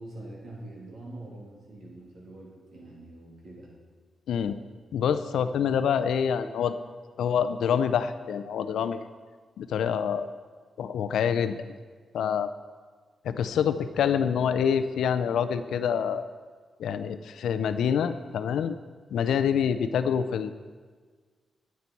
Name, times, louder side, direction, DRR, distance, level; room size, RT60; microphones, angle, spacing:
voice 1, 0.0-3.7, right 1 dB, 75° right, -3 dB, 2.9 m, -44 dB
voice 2, 4.3-4.6 4.9-6.8 7.2-9.1 9.6-10.3 10.8-11.7 12.1-12.5 13.2-16.3 16.8-18.8 19.1-20.5, left 7 dB, 85° left, 12 dB, 0.5 m, -26 dB
9.7 x 9.4 x 4.2 m, 1.5 s
supercardioid pair, 55°, 0 cm